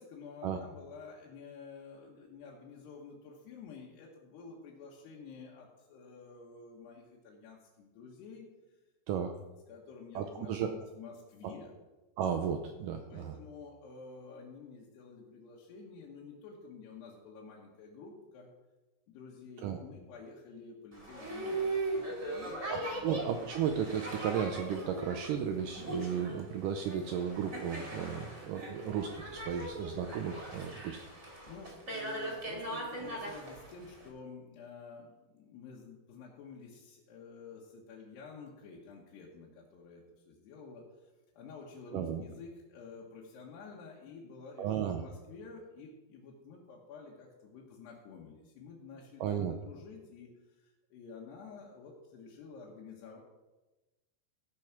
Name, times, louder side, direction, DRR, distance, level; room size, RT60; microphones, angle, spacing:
voice 1, 0.0-8.5 9.7-11.7 13.1-18.5 19.1-23.1 31.5-50.3 50.6-53.2, left 4 dB, 85° left, -3 dB, 3.5 m, -50 dB
voice 2, 10.2-10.7 11.4-11.5 12.2-13.3 19.6-19.8 22.7-31.0 41.9-42.2 44.6-45.0 49.2-49.5, right 8 dB, 90° right, 5 dB, 1.9 m, -34 dB
Boat Water vehicle, 20.9-34.1, right 2 dB, 20° right, 2.5 m, -39 dB
15.5 x 6.2 x 5.9 m, 1.1 s
omnidirectional pair, 4.6 m